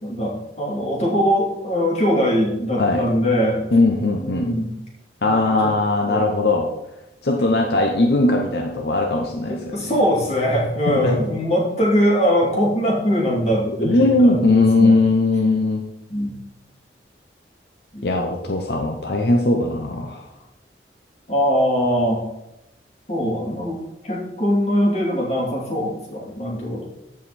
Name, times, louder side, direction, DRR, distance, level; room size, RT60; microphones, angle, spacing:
voice 1, 0.0-3.6 4.2-4.7 5.2-5.7 6.1-6.3 7.4-7.5 9.5-15.0 16.1-16.4 17.9-18.0 21.3-22.2 23.1-26.8, equal, 35° left, -3 dB, 2.7 m, -22 dB
voice 2, 2.8-3.1 3.7-4.6 5.2-6.7 7.2-9.9 11.0-11.2 13.8-15.8 18.0-20.3, left 2 dB, 65° left, 2 dB, 0.9 m, -19 dB
14.5 x 5.0 x 4.2 m, 0.89 s
head